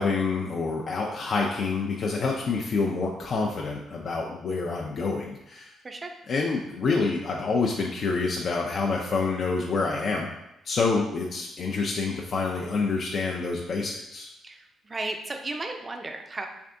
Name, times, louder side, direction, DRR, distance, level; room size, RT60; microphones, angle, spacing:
voice 1, 0.0-5.7 6.3-10.3 10.6-14.3, left 4 dB, 50° left, -1 dB, 0.4 m, -27 dB
voice 2, 14.4-16.5, right 2 dB, 25° right, 4 dB, 0.4 m, -34 dB
3.4 x 3.4 x 2.6 m, 0.87 s
cardioid pair, 90°, 0 cm